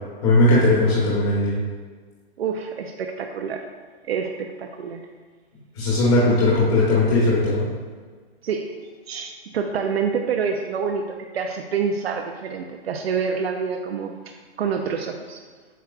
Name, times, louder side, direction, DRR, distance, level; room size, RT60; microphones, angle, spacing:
voice 1, 0.2-1.6 5.7-7.6, left 2 dB, 25° left, -6 dB, 1.2 m, -18 dB
voice 2, 2.4-3.7 4.1-5.0 8.4-8.7 9.1-15.4, right 6 dB, 80° right, 4 dB, 0.7 m, -27 dB
8.1 x 6.0 x 2.4 m, 1.5 s
hypercardioid pair, 175°, 31 cm